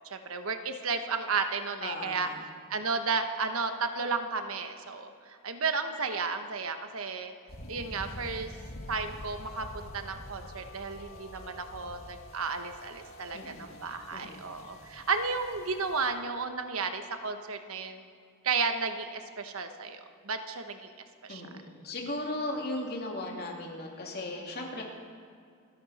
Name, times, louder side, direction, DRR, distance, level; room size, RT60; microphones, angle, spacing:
voice 1, 0.1-2.3 2.7-7.3 7.7-8.5 8.9-18.1 18.4-20.9 21.2-21.4, right 4 dB, 75° right, 7 dB, 1.1 m, -33 dB
voice 2, 1.8-2.4 13.3-14.7 21.3-24.8, left 2 dB, 45° left, -1 dB, 2.7 m, -37 dB
sound 1, 7.5-16.1, equal, 65° left, 2.0 m, -46 dB
28.5 x 11.0 x 4.3 m, 2.3 s
head